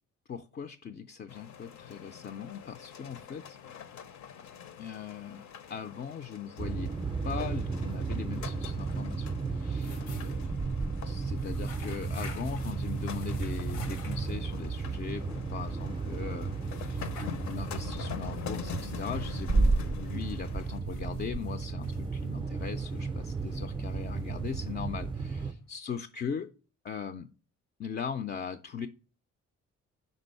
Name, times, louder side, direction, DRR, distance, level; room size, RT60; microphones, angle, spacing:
voice 1, 0.3-3.6 4.8-5.4 5.7-6.9 7.2-10.4 11.0-26.5 26.8-27.3 27.8-28.9, left 7 dB, 35° left, 0.4 m, -40 dB
sound 1, 1.3-20.8, left 8 dB, 65° left, 0.7 m, -45 dB
sound 2, 6.6-25.5, right 4 dB, 15° right, 0.5 m, -33 dB
sound 3, 9.6-25.7, left 3 dB, 90° left, 1.2 m, -51 dB
5.3 x 3.8 x 5.3 m
cardioid pair, 90°, 30 cm